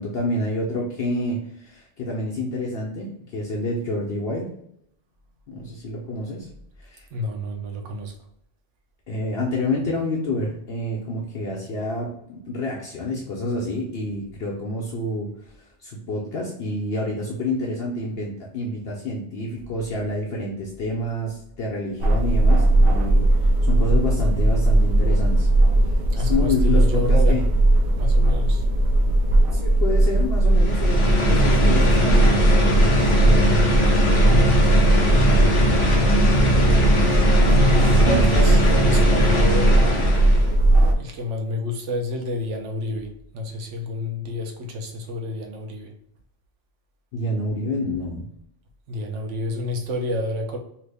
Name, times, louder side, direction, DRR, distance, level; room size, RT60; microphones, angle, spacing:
voice 1, 0.0-4.5 5.5-6.5 6.8-7.1 9.1-15.3 15.8-23.2 23.6-25.5 26.2-27.4 29.5-33.5 37.8-38.3 47.1-48.2, left 1 dB, 65° left, 0.8 m, -28 dB
voice 2, 7.1-8.2 26.1-27.5 28.0-28.7 34.1-34.9 37.5-40.1 41.0-45.9 48.9-50.6, left 2 dB, 85° right, 1.0 m, -29 dB
sound 1, 22.0-40.9, right 1 dB, 60° right, 0.7 m, -18 dB
sound 2, 30.5-40.5, equal, 35° left, 0.5 m, -21 dB
2.9 x 2.6 x 3.3 m
omnidirectional pair, 1.2 m